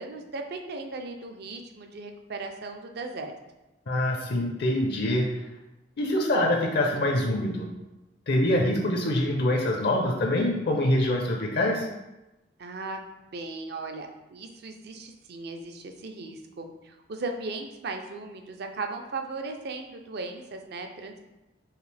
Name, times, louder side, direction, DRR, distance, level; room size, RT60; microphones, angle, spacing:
voice 1, 0.0-3.3 12.6-13.0 13.3-21.3, right 3 dB, 60° right, 4 dB, 0.5 m, -37 dB
voice 2, 3.9-5.5 6.0-7.7 8.3-11.9, left 1 dB, 60° left, 1 dB, 0.5 m, -25 dB
4.8 x 2.7 x 3.3 m, 0.99 s
head